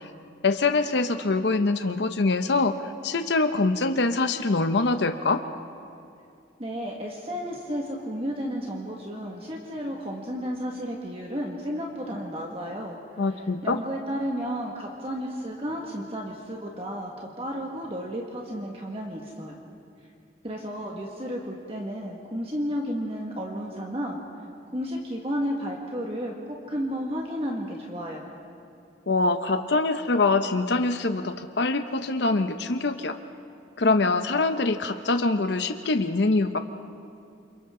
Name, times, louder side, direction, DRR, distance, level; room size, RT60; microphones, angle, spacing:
voice 1, 0.4-2.7 3.0-5.4 13.2-13.8 29.1-33.2 33.8-36.6, left 3 dB, 65° left, 8 dB, 0.8 m, -24 dB
voice 2, 6.6-19.6 20.4-24.2 24.7-28.2, equal, 30° right, -1 dB, 1.8 m, -32 dB
29.5 x 27.5 x 3.8 m, 2.5 s
head